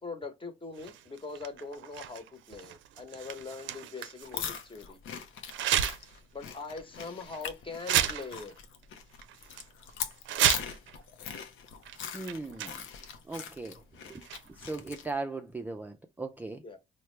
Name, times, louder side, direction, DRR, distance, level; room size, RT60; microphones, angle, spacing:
voice 1, 0.0-5.0 6.3-8.5 16.6-16.8, left 4 dB, 25° left, 1.0 m, -42 dB
sound 1, 0.8-4.6 5.5-6.2 6.6-6.7 7.3-7.5 7.8-8.8 9.2-9.6 10.1-11.0 11.8-12.0 12.3-13.1 14.1-14.7, right 11 dB, 75° right, 0.5 m, -32 dB
sound 2, 4.2-15.1, left 7 dB, 85° left, 0.6 m, -41 dB
voice 2, 12.1-12.9 13.2-16.6, right 3 dB, 10° right, 0.3 m, -39 dB
4.4 x 2.1 x 3.2 m
cardioid pair, 90°, 20 cm